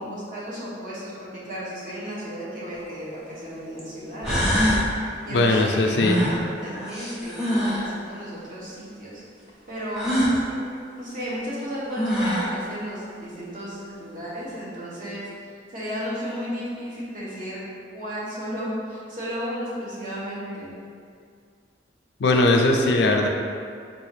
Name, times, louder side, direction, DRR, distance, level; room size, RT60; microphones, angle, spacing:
voice 1, 0.0-9.2 9.7-10.6 11.0-17.6 17.9-20.7, equal, 45° right, -8 dB, 1.0 m, -34 dB
sound 1, 2.7-2.8 3.8-3.9 4.2-4.9 5.9-7.9 9.9-10.4 11.6-11.7 11.9-12.6, equal, 5° right, 0.5 m, -24 dB
voice 2, 5.3-6.3 22.2-23.3, left 2 dB, 70° left, 2 dB, 0.4 m, -19 dB
3.8 x 2.4 x 3.2 m, 2.2 s
head